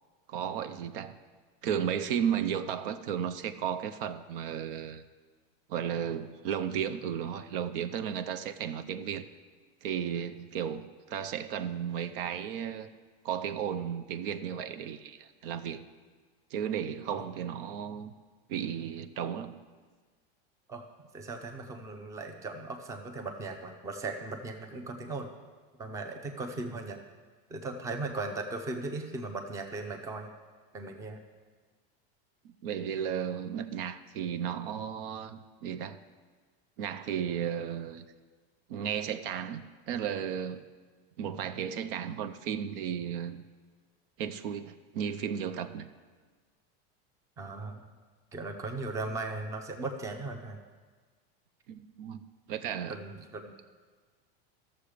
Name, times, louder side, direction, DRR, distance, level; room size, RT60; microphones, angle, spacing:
voice 1, 0.3-1.2 1.6-5.0 5.7-9.3 9.8-12.9 13.2-15.9 16.5-18.1 18.5-19.6 32.4-36.0 36.8-38.1 38.7-40.6 41.2-43.4 44.2-45.9 51.7-53.0, right 8 dB, 65° right, 10 dB, 0.6 m, -34 dB
voice 2, 21.1-25.3 25.8-27.0 27.5-30.3 30.7-31.2 47.4-47.8 48.3-50.6 52.9-53.5, right 3 dB, 10° right, 5 dB, 0.6 m, -37 dB
13.0 x 7.1 x 5.0 m, 1.4 s
supercardioid pair, 165°, 29 cm